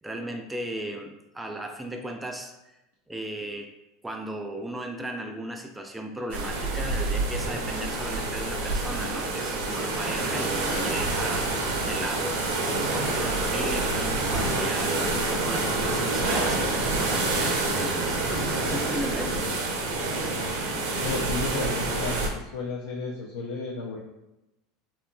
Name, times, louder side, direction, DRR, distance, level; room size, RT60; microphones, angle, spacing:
voice 1, 0.0-2.8 3.1-3.7 4.0-12.5 12.9-19.4, right 1 dB, 10° right, 3 dB, 0.3 m, -36 dB
sound 1, 6.3-22.3, right 2 dB, 80° right, 0.5 m, -27 dB
voice 2, 20.9-24.0, left 3 dB, 85° left, -3 dB, 0.3 m, -33 dB
2.8 x 2.4 x 2.2 m, 0.94 s
hypercardioid pair, 100°, 0 cm